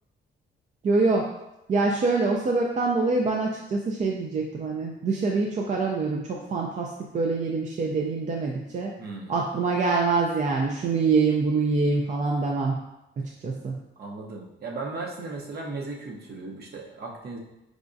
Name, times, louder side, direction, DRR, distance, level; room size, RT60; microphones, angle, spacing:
voice 1, 0.8-1.3 1.7-8.9 9.3-12.8 13.4-13.8, right 3 dB, 40° right, 0 dB, 0.4 m, -25 dB
voice 2, 9.0-9.4 14.0-17.4, right 3 dB, 55° right, -1 dB, 0.8 m, -36 dB
4.9 x 2.3 x 2.6 m, 0.92 s
cardioid pair, 90°, 20 cm